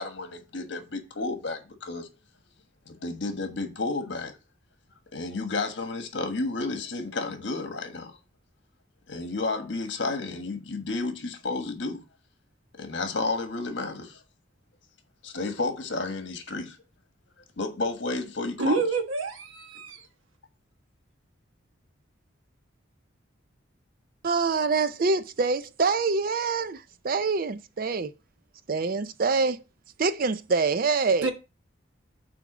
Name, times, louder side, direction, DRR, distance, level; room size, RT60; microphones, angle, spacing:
voice 1, 0.0-2.1 2.8-4.3 5.1-8.1 9.1-12.0 12.8-14.2 15.2-16.8 17.6-18.8, left 3 dB, 60° left, 1.4 m, -31 dB
voice 2, 18.6-20.0 31.2-31.3, right 3 dB, 85° right, 1.3 m, -27 dB
voice 3, 24.2-26.8 27.0-28.1 28.7-29.6 30.0-31.3, right 4 dB, 45° right, 0.5 m, -25 dB
6.0 x 4.5 x 6.1 m
head